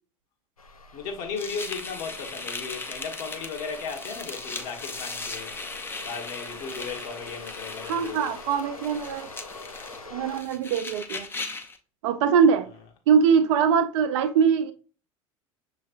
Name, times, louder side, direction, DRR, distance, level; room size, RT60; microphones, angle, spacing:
sound 1, 0.6-10.4, left 3 dB, 85° left, 0.5 m, -45 dB
voice 1, 0.9-5.5 6.0-8.4, left 5 dB, 50° left, 1.3 m, -36 dB
sound 2, 1.4-11.8, left 3 dB, 10° left, 0.6 m, -38 dB
voice 2, 7.9-9.3 10.1-11.3 12.0-12.7 13.1-14.7, right 7 dB, 55° right, 0.6 m, -22 dB
6.3 x 3.2 x 2.5 m
figure-of-eight pair, 75°, 18 cm